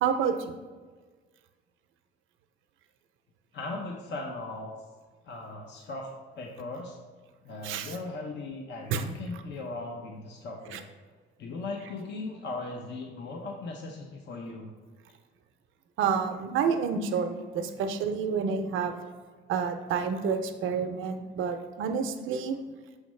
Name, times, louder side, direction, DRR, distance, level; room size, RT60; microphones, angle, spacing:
voice 1, 0.0-0.3 7.6-7.9 8.9-9.0 10.7-10.8 16.0-18.9 19.5-22.6, right 6 dB, 85° right, 7 dB, 0.6 m, -29 dB
voice 2, 3.5-4.7 5.2-7.0 7.4-10.9 11.4-14.7, left 3 dB, 65° left, 1 dB, 0.7 m, -38 dB
6.3 x 4.9 x 3.2 m, 1.4 s
cardioid pair, 90°, 20 cm